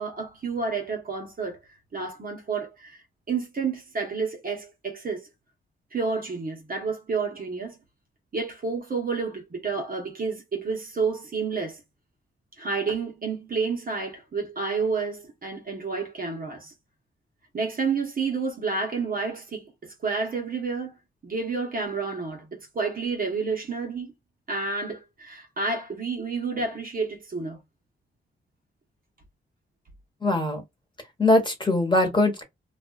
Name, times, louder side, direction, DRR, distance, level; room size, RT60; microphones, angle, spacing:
voice 1, 0.0-1.6 1.9-5.3 5.9-7.8 8.3-11.8 12.6-16.7 17.5-21.0 21.2-24.1 24.5-27.6, right 4 dB, 45° right, 0.9 m, -30 dB
voice 2, 30.2-30.6 31.2-32.4, left 2 dB, 20° left, 1.2 m, -21 dB
2.5 x 2.3 x 2.3 m
cardioid pair, 70°, 21 cm